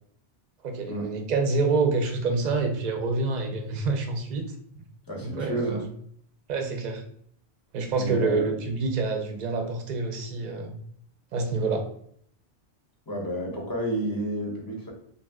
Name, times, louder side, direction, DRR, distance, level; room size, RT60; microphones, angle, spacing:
voice 1, 0.6-4.5 5.2-5.8 6.5-7.0 7.7-10.8 11.3-11.9, right 3 dB, 55° right, 4 dB, 0.5 m, -27 dB
voice 2, 5.1-5.8 8.0-8.5 13.1-14.9, right 1 dB, 25° left, -2 dB, 0.6 m, -30 dB
2.6 x 2.1 x 3.4 m, 0.65 s
omnidirectional pair, 1.1 m